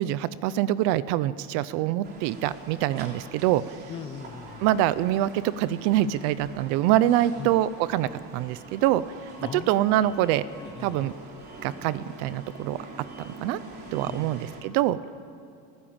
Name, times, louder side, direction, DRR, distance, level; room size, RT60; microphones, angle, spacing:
voice 1, 0.0-3.6 4.6-9.0 9.5-10.4 10.8-11.1 11.6-12.8 13.2-13.6 13.9-15.0, right 13 dB, 50° right, 17 dB, 0.6 m, -25 dB
sound 1, 2.0-14.6, right 2 dB, 30° right, 3.3 m, -45 dB
voice 2, 3.9-4.7 7.4-7.6 9.4-9.9 10.6-11.1 14.1-14.8, left 7 dB, 15° left, 12 dB, 0.5 m, -40 dB
30.0 x 15.5 x 8.8 m, 2.5 s
cardioid pair, 180°, 33 cm